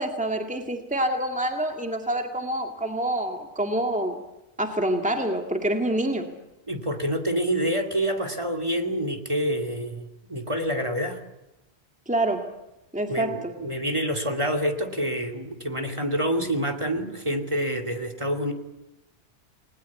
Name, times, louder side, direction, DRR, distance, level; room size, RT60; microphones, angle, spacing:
voice 1, 0.0-4.2 4.6-6.3 12.1-12.5 12.9-13.5, right 1 dB, 5° right, 4 dB, 2.1 m, -27 dB
voice 2, 6.7-11.2 13.1-18.5, equal, 30° right, 7 dB, 2.5 m, -27 dB
30.0 x 20.5 x 8.5 m, 0.98 s
omnidirectional pair, 1.1 m